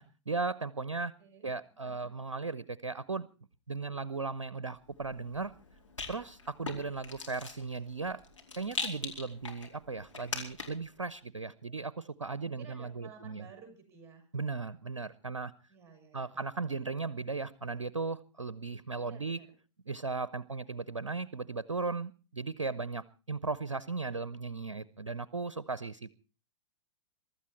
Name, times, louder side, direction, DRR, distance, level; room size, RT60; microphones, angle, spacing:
voice 1, 0.0-1.1 1.4-3.3 3.7-5.5 6.1-8.2 8.6-13.5 14.3-15.5 16.1-19.4 19.9-26.1, right 4 dB, 75° right, 19 dB, 0.7 m, -37 dB
voice 2, 1.2-1.5 1.8-2.1 12.5-14.3 15.7-16.4 16.9-17.2 19.0-19.5, right 6 dB, 15° right, 4 dB, 7.0 m, -54 dB
Rattle, 4.8-10.9, left 4 dB, 80° left, 4.6 m, -42 dB
23.5 x 13.0 x 4.4 m, 0.36 s
figure-of-eight pair, 105°, 16 cm